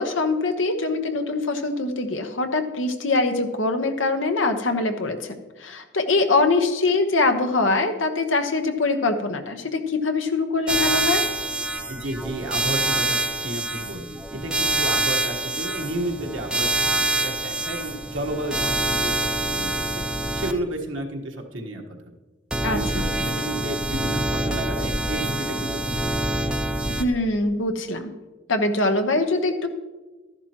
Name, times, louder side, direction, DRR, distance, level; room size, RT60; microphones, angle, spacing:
voice 1, 0.0-5.2 5.6-11.2 22.6-23.0 26.9-28.1 28.5-29.7, left 3 dB, 80° left, 6 dB, 1.1 m, -23 dB
sound 1, 10.7-20.5 22.5-27.0, right 1 dB, 5° right, 0.6 m, -26 dB
voice 2, 11.9-19.9 20.3-22.1 22.7-26.2, right 1 dB, 80° right, 1 dB, 1.4 m, -32 dB
13.0 x 11.0 x 3.0 m, 1.2 s
head